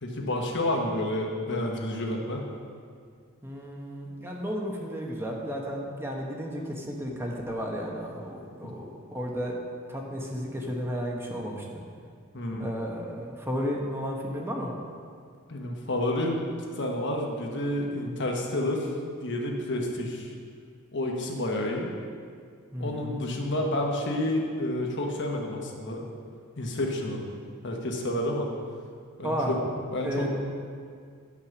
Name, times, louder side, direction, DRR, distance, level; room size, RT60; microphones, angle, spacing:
voice 1, 0.0-2.5 8.6-8.7 12.3-12.7 15.5-16.4 16.8-18.9 19.2-20.3 20.9-21.9 22.8-26.0 26.6-27.2 27.6-28.5 29.2-29.6 29.9-30.3, left 1 dB, 55° left, 1 dB, 1.2 m, -29 dB
voice 2, 3.4-9.6 9.9-11.6 12.6-14.7 22.7-23.2 29.2-29.5 30.0-30.3, equal, 10° right, -1 dB, 1.1 m, -33 dB
9.8 x 5.8 x 6.1 m, 2.1 s
head